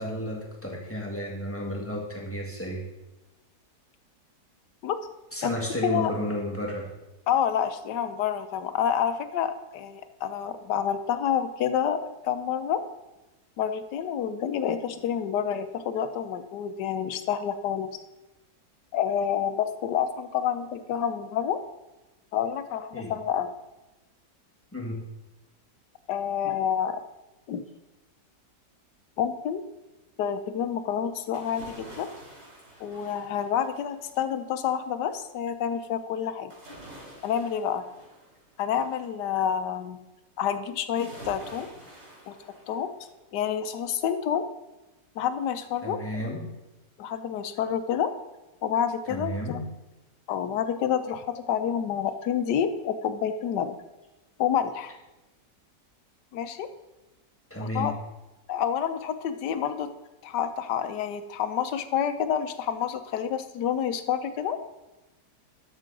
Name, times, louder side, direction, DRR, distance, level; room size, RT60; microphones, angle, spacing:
voice 1, 0.0-2.9 5.3-6.9 22.9-23.1 24.7-25.0 45.8-46.5 49.1-49.7 57.5-57.9, equal, 10° left, -2 dB, 1.5 m, -32 dB
voice 2, 7.3-12.0 12.2-12.8 13.6-18.0 18.9-21.6 22.3-23.5 26.1-27.0 27.5-27.6 29.2-29.6 30.2-32.1 32.8-36.5 37.2-37.8 38.6-40.0 40.4-41.7 42.3-42.4 42.7-42.9 43.3-44.5 45.2-46.2 47.0-48.1 48.6-49.6 50.3-53.8 54.4-54.9 56.3-56.7 57.6-57.9 58.5-59.9 60.2-64.6, left 8 dB, 75° left, 10 dB, 1.3 m, -28 dB
sound 1, 31.3-34.1 36.5-39.1 40.9-43.2 43.6-43.7, right 1 dB, 80° right, 4.4 m, -48 dB
12.0 x 6.6 x 3.8 m, 1.0 s
omnidirectional pair, 1.9 m